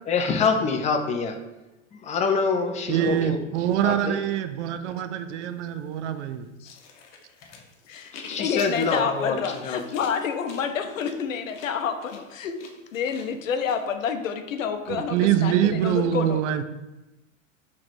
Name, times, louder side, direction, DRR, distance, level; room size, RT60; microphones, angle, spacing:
voice 1, 0.1-1.4 1.9-3.4 3.8-4.2 8.1-9.8, left 4 dB, 20° left, 5 dB, 0.4 m, -25 dB
voice 2, 2.9-6.5 14.9-16.6, right 10 dB, 65° right, 10 dB, 0.5 m, -24 dB
sound 1, 6.7-13.8, left 4 dB, 65° left, 0.8 m, -43 dB
voice 3, 8.4-12.6 12.9-16.4, left 7 dB, 85° left, 7 dB, 0.6 m, -29 dB
5.7 x 3.1 x 2.6 m, 1.0 s
hypercardioid pair, 95°, 39 cm